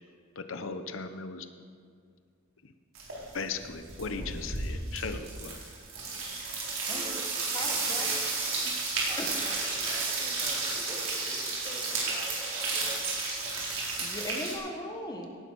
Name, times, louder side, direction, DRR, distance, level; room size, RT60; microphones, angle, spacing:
voice 1, 0.4-1.5 2.6-2.7 3.3-5.6, left 4 dB, 70° left, 9 dB, 0.8 m, -37 dB
sound 1, 3.0-3.3 3.6-14.6, right 3 dB, 75° right, 4.4 m, -32 dB
voice 2, 6.8-7.3 8.0-8.2 8.5-8.6 9.1-13.1, right 1 dB, 30° right, -3 dB, 2.9 m, -44 dB
voice 3, 7.5-8.2 9.2-9.3 14.0-15.3, left 1 dB, 20° left, 1 dB, 1.5 m, -38 dB
17.5 x 11.5 x 4.7 m, 2.2 s
head